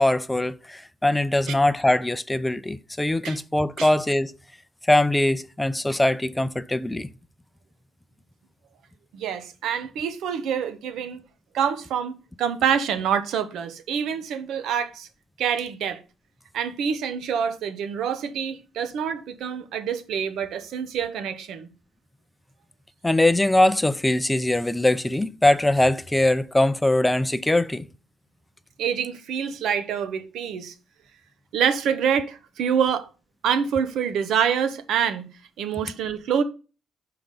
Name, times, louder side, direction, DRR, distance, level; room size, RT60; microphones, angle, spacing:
voice 1, 0.0-4.3 4.9-7.1 23.0-27.9, left 1 dB, 10° left, 0.5 m, -22 dB
voice 2, 9.1-11.2 11.5-15.1 15.4-16.0 16.5-21.7 28.8-30.7 31.5-33.1 33.4-35.3 35.6-36.4, right 7 dB, 80° right, 1.0 m, -26 dB
5.7 x 5.2 x 6.6 m
cardioid pair, 90°, 0 cm